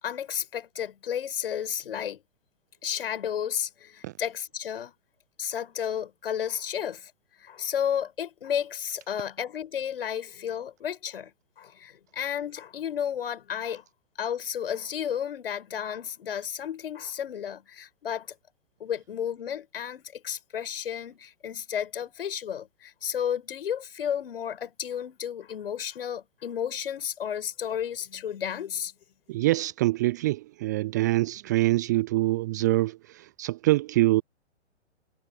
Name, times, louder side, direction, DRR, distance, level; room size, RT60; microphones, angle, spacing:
voice 1, 0.0-2.2 2.8-4.9 5.4-7.1 7.4-13.8 14.2-18.3 18.8-28.9, left 9 dB, 55° left, 7.6 m, -32 dB
voice 2, 29.3-34.2, right 18 dB, 15° right, 0.4 m, -25 dB
figure-of-eight pair, 120°, 35 cm